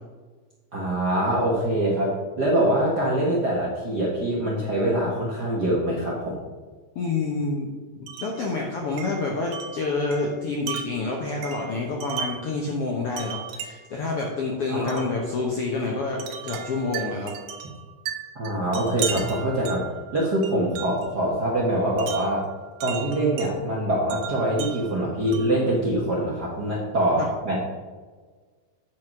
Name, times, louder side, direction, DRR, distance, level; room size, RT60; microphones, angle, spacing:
voice 1, 0.7-6.4 14.7-15.0 18.3-22.5 22.8-27.7, right 1 dB, 55° right, -5 dB, 1.1 m, -24 dB
voice 2, 6.9-7.7 7.9-17.3 27.2-27.3, left 3 dB, 70° left, -1 dB, 1.4 m, -28 dB
Wind chime, 8.1-8.4 9.0-12.5 13.2-14.0 14.9-15.1 16.2-21.1 22.0-23.5 24.1-25.6, right 8 dB, 75° right, 2.4 m, -36 dB
9.4 x 4.7 x 6.0 m, 1.4 s
omnidirectional pair, 3.9 m